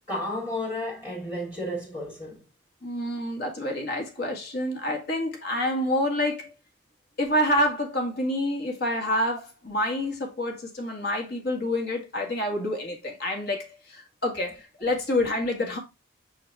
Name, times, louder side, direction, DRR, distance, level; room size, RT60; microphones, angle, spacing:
voice 1, 0.1-2.4, left 1 dB, 15° left, 1.6 m, -32 dB
voice 2, 2.8-6.5 7.2-15.8, left 1 dB, 55° left, 1.9 m, -28 dB
6.2 x 4.6 x 3.3 m
head